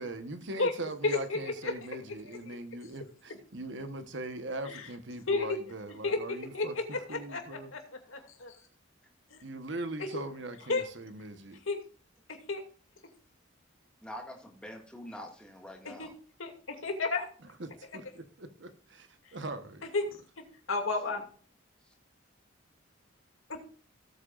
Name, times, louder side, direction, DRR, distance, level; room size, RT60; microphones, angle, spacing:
voice 1, 0.0-6.7 7.1-7.7 9.4-11.6 17.9-19.8, right 2 dB, 65° right, 9 dB, 1.2 m, -40 dB
voice 2, 1.0-1.7 2.1-2.2 2.5-2.6 4.6-4.9 5.3-5.6 6.0-7.8 8.1-8.6 9.3-9.4 10.0-10.2 10.7-10.9 11.7-11.8 12.3-12.6 15.8-16.1 16.4-17.2 19.2-19.4 19.9-20.0 20.4-21.2 23.5-23.6, left 3 dB, 85° left, 3 dB, 2.5 m, -32 dB
voice 3, 14.0-16.1 21.1-21.2 21.9-22.0, equal, 5° left, 1 dB, 2.0 m, -45 dB
18.0 x 8.7 x 2.5 m, 0.42 s
head